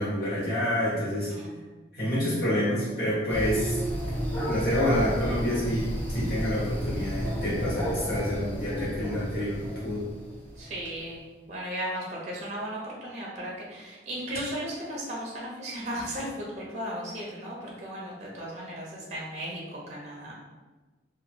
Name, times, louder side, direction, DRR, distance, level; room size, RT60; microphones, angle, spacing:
voice 1, 0.0-1.3 1.9-3.8 4.4-10.0, left 1 dB, 55° left, -9 dB, 1.3 m, -28 dB
sound 1, 3.3-10.9, right 1 dB, 10° left, 0.5 m, -32 dB
voice 2, 10.6-11.2 11.5-20.3, equal, 40° right, -4 dB, 0.6 m, -36 dB
3.0 x 2.3 x 2.6 m, 1.2 s
head